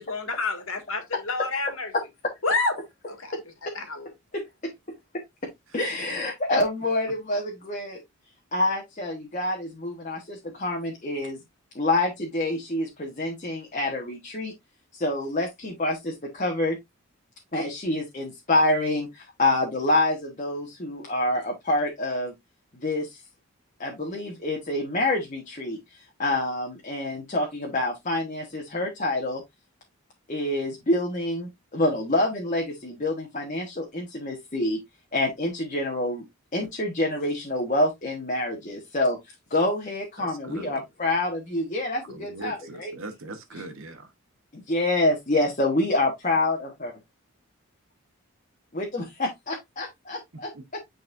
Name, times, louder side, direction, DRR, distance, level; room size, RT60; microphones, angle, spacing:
voice 1, 0.0-1.9 2.4-2.7 3.1-3.3 3.7-4.1, left 3 dB, 75° left, 1.9 m, -28 dB
voice 2, 4.3-4.7 5.7-8.0 8.5-11.4 11.7-14.5 14.9-16.8 17.5-22.3 22.8-23.2 23.8-29.4 30.3-34.8 35.1-36.2 36.5-39.2 39.5-42.9 44.5-46.9 48.7-50.8, left 1 dB, 35° left, 1.2 m, -27 dB
voice 3, 40.2-40.8 42.1-44.1, right 2 dB, 70° right, 1.0 m, -40 dB
9.4 x 4.0 x 2.5 m
head